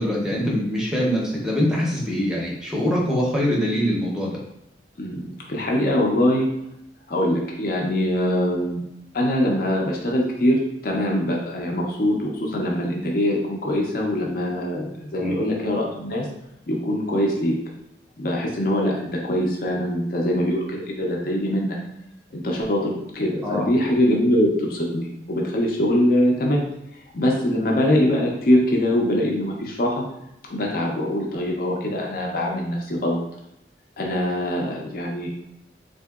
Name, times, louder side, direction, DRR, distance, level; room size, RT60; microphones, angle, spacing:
voice 1, 0.0-4.4 15.1-15.4 23.4-23.7, equal, 5° right, -3 dB, 0.6 m, -23 dB
voice 2, 5.0-6.5 7.1-8.8 9.1-16.3 16.7-17.6 18.2-21.8 22.3-26.7 27.1-30.0 30.5-33.2 34.0-35.3, left 1 dB, 50° left, -1 dB, 0.5 m, -23 dB
3.6 x 2.6 x 2.3 m, 0.82 s
head